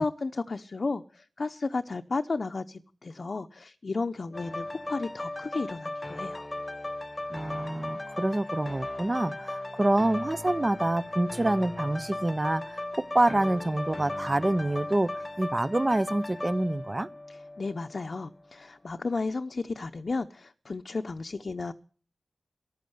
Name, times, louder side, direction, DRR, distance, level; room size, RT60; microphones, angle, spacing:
voice 1, 0.0-6.5 17.3-21.7, left 3 dB, 55° left, 0.8 m, -33 dB
sound 1, 4.3-18.0 18.5-18.6, left 2 dB, 25° left, 1.1 m, -37 dB
voice 2, 7.3-12.8 13.1-15.1 15.4-17.1, right 1 dB, 25° right, 0.7 m, -27 dB
14.5 x 12.0 x 7.9 m
wide cardioid pair, 70°, 0 cm